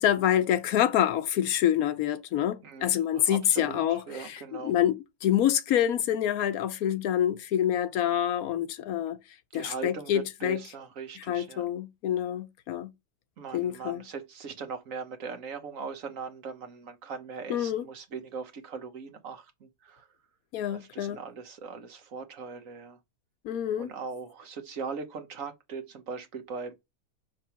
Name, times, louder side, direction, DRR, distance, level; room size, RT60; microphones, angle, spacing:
voice 1, 0.0-9.2 9.5-10.6 11.2-12.9 13.5-14.0 17.5-17.8 20.5-21.2 23.4-23.9, left 11 dB, 75° left, 1.1 m, -27 dB
voice 2, 2.6-4.8 9.5-11.7 13.4-20.1 20.7-23.0 23.8-26.7, right 5 dB, 60° right, 1.4 m, -40 dB
6.4 x 3.4 x 5.7 m
omnidirectional pair, 1.6 m